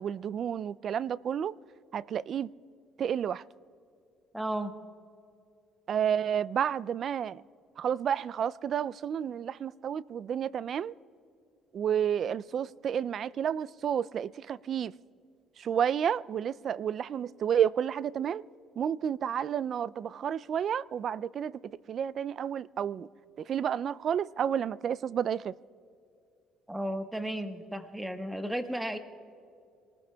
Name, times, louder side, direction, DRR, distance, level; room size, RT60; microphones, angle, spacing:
voice 1, 0.0-1.5 1.9-2.5 3.0-3.4 5.9-7.4 7.8-10.9 11.7-14.9 15.6-18.4 18.8-23.1 23.4-25.5, right 8 dB, 55° right, 0.3 m, -31 dB
voice 2, 4.3-4.7 26.7-29.0, right 1 dB, 5° right, 1.2 m, -34 dB
26.5 x 19.5 x 2.3 m
cardioid pair, 90°, 0 cm